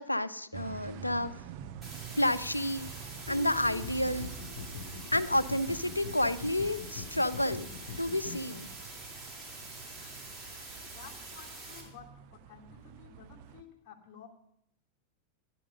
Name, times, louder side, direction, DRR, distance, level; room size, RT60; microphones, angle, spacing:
voice 1, 0.0-1.3 2.1-2.9 3.3-4.3 5.1-7.7 8.0-8.7, left 1 dB, 85° left, 16 dB, 0.7 m, -30 dB
sound 1, 0.5-13.6, right 9 dB, 45° right, 1.0 m, -48 dB
sound 2, 1.8-11.8, right 2 dB, 15° right, 5.3 m, -46 dB
sound 3, 3.1-8.4, left 6 dB, 60° left, 1.3 m, -43 dB
voice 2, 10.9-14.3, left 7 dB, 35° left, -1 dB, 2.9 m, -53 dB
15.0 x 11.0 x 5.3 m, 0.75 s
figure-of-eight pair, 90°, 0 cm